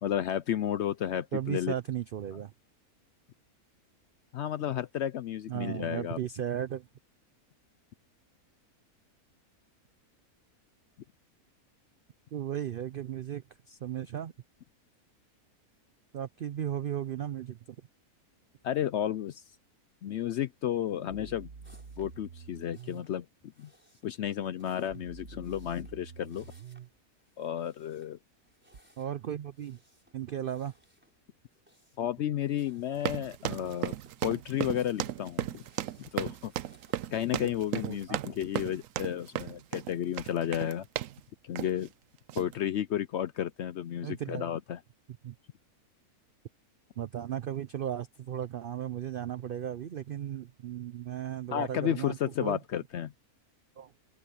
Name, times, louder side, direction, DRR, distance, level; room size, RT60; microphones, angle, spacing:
voice 1, 0.0-1.7 4.3-6.2 18.6-19.4 20.0-21.5 22.0-23.3 23.6-23.7 24.0-26.5 27.4-28.2 32.0-34.0 34.2-35.6 36.1-36.5 37.1-40.9 41.4-41.9 42.4-44.8 51.5-53.1, left 10 dB, 65° left, 0.7 m, -32 dB
voice 2, 1.3-2.5 5.5-6.9 12.3-14.3 16.1-17.8 29.0-29.8 30.1-30.7 37.7-38.2 44.0-44.5 45.2-45.3 47.0-52.6 53.8-53.9, right 10 dB, 85° right, 0.4 m, -36 dB
sound 1, 21.1-23.1 24.9-26.9 28.7-28.8, right 6 dB, 45° right, 1.4 m, -47 dB
sound 2, 21.6-37.1, equal, 5° right, 4.7 m, -65 dB
sound 3, 33.0-41.2 41.6-41.9 42.3-42.5, right 13 dB, 70° right, 0.9 m, -35 dB
open air
omnidirectional pair, 1.6 m